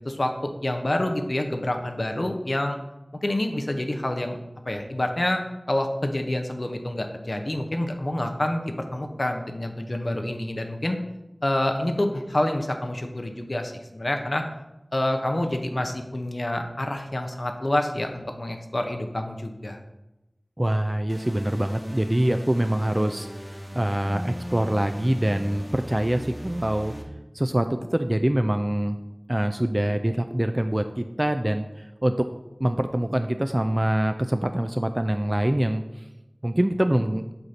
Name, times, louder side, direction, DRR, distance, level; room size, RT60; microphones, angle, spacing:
voice 1, 0.0-2.8 3.1-4.4 4.7-5.4 5.7-11.0 11.4-14.4 14.9-19.8, left 1 dB, 55° left, 5 dB, 0.7 m, -27 dB
voice 2, 20.6-26.9 27.3-29.0 29.3-32.3 32.6-36.0 36.4-37.2, right 1 dB, 25° right, 7 dB, 0.3 m, -24 dB
sound 1, 21.1-27.0, equal, 5° right, 1.1 m, -38 dB
8.0 x 2.7 x 5.7 m, 0.96 s
wide cardioid pair, 50°, 0 cm